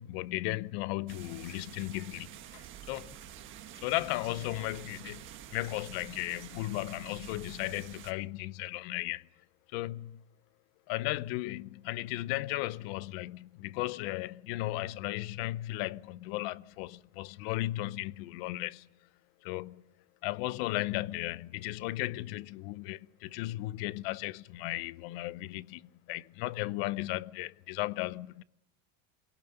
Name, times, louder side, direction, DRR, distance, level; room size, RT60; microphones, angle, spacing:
voice 1, 0.0-3.2 3.8-5.2 5.5-9.2 9.7-10.2 10.9-18.9 19.4-19.8 20.2-25.8 26.1-28.4, left 18 dB, 50° left, 0.7 m, -35 dB
sound 1, 1.1-8.1, right 11 dB, 30° right, 1.5 m, -48 dB
24.5 x 18.0 x 6.8 m
supercardioid pair, 160°, 39 cm